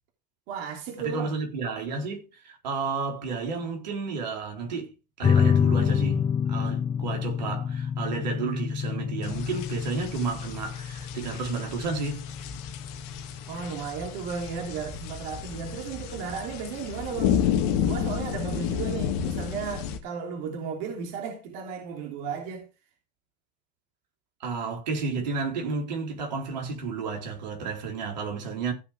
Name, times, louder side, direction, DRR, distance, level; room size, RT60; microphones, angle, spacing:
voice 1, 0.5-1.3 13.5-17.4 17.8-22.7, right 6 dB, 65° right, 3.0 m, -34 dB
voice 2, 1.0-12.3 24.4-28.7, right 4 dB, 85° right, 3.9 m, -32 dB
sound 1, 5.2-16.2, left 7 dB, 20° left, 0.5 m, -28 dB
sound 2, 9.2-20.0, left 8 dB, 65° left, 2.0 m, -31 dB
15.5 x 6.0 x 4.8 m
hypercardioid pair, 85°, 21 cm